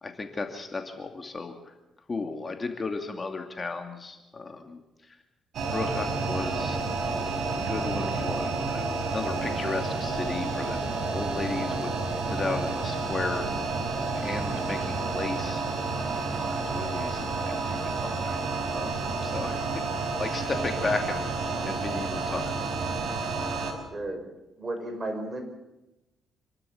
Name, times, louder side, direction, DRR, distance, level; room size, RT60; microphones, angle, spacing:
voice 1, 0.0-1.5 2.1-4.8 5.1-5.2 5.7-6.8 7.6-11.9 12.3-13.5 14.1-15.6 16.3-18.4 18.6-19.6 20.0-22.7, left 3 dB, 30° left, 4 dB, 2.5 m, -35 dB
sound 1, 5.5-23.7, right 3 dB, 65° right, 5.0 m, -30 dB
voice 2, 23.9-24.2 24.6-25.4, right 2 dB, 30° right, 5 dB, 5.5 m, -34 dB
27.5 x 12.5 x 8.8 m, 0.97 s
cardioid pair, 90°, 0 cm